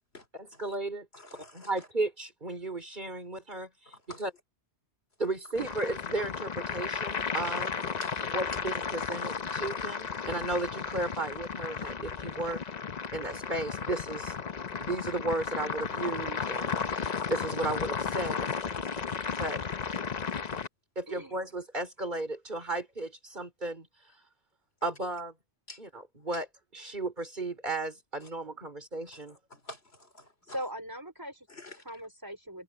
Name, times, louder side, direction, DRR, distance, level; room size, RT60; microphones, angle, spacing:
voice 1, 0.6-1.1 1.5-3.9 4.2-4.3 5.2-7.9 8.3-12.6 13.1-14.3 14.8-18.5 19.4-19.6 21.0-23.9 24.8-25.3 25.8-25.9 26.2-26.5 26.7-29.4, right 2 dB, 40° right, 3.7 m, -34 dB
voice 2, 1.1-1.9 3.9-4.2 8.0-8.1 25.7-25.8 28.2-28.3 29.1-30.6 31.5-31.8, left 1 dB, 60° left, 3.7 m, -49 dB
sound 1, 5.6-20.7, left 6 dB, 40° left, 0.8 m, -34 dB
voice 3, 21.1-21.4 30.5-31.5 31.8-32.6, equal, 15° right, 4.6 m, -40 dB
omnidirectional pair, 1.2 m